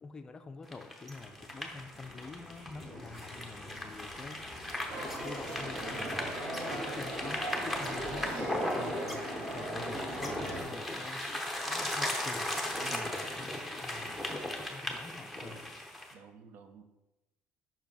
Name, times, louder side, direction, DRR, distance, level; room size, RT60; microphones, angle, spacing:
voice 1, 0.0-4.4 5.0-6.4 6.7-9.3 9.5-12.5 12.9-15.6, left 3 dB, 20° left, 7 dB, 0.4 m, -47 dB
sound 1, 0.7-16.1, left 1 dB, ahead, 0.8 m, -37 dB
sound 2, 1.1-7.8, left 1 dB, 20° right, 2.5 m, -54 dB
sound 3, 4.9-10.6, right 1 dB, 45° right, 2.7 m, -39 dB
voice 2, 12.8-13.1 16.1-16.8, right 5 dB, 60° right, 8 dB, 0.7 m, -50 dB
5.6 x 5.0 x 5.3 m, 1.0 s
cardioid pair, 150°, 3 cm